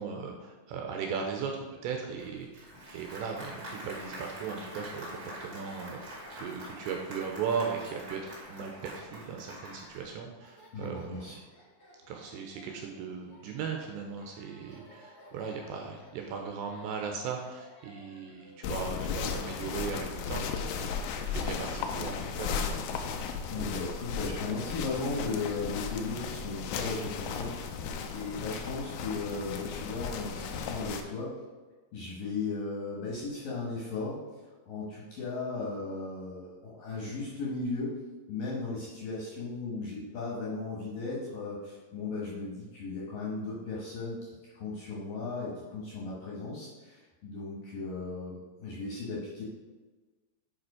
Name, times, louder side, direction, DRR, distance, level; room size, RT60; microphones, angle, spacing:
voice 1, 0.0-11.4 12.1-23.2, right 6 dB, 85° right, 2 dB, 2.6 m, -38 dB
Applause, 2.2-10.1, equal, 35° right, 1.8 m, -45 dB
Laughter, 4.5-20.6, equal, 40° left, 1.4 m, -58 dB
voice 2, 10.7-11.4 23.5-27.5 28.1-31.3 31.9-34.2 34.7-37.9 38.3-49.4, left 3 dB, 65° left, -5 dB, 2.2 m, -36 dB
sound 1, 18.6-31.0, left 6 dB, 90° left, 2.4 m, -35 dB
7.5 x 5.2 x 4.8 m, 1.3 s
omnidirectional pair, 5.6 m